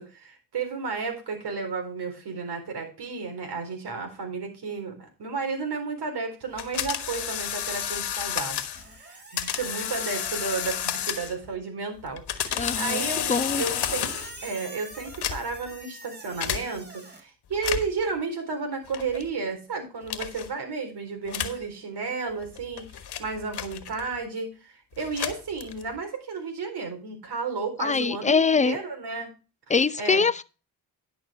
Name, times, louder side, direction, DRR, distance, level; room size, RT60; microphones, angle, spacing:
voice 1, 0.0-8.6 8.9-13.3 13.6-29.3 30.0-30.3, right 4 dB, 65° right, 4.2 m, -33 dB
sound 1, 6.6-8.8 9.4-11.5 12.1-14.4 15.1-15.7 16.4-16.6 17.5-18.0 18.9-19.3 20.1-20.5 21.3-21.6 22.4-24.2 24.9-26.0, left 10 dB, 65° left, 1.3 m, -31 dB
Squeak, 8.7-11.5 13.7-17.2, right 2 dB, 25° right, 3.2 m, -45 dB
voice 2, 12.6-13.0 13.3-13.6 27.8-28.8 29.7-30.4, left 4 dB, 15° left, 0.6 m, -23 dB
11.0 x 6.1 x 5.0 m
supercardioid pair, 55°, 42 cm